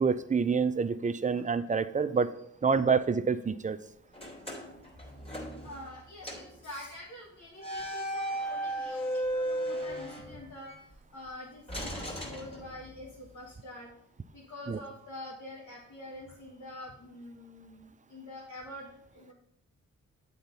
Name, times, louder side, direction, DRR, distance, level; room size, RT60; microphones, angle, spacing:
voice 1, 0.0-2.3 2.6-3.8 14.7-14.8, right 5 dB, 25° right, 12 dB, 0.5 m, -27 dB
sound 1, 4.1-6.0 6.2-6.6 7.6-10.8 11.7-13.1, right 1 dB, 15° left, 2.7 m, -36 dB
voice 2, 5.6-13.9 14.3-19.3, left 1 dB, 65° left, -3 dB, 1.6 m, -46 dB
8.6 x 3.9 x 5.6 m, 0.73 s
cardioid pair, 55°, 33 cm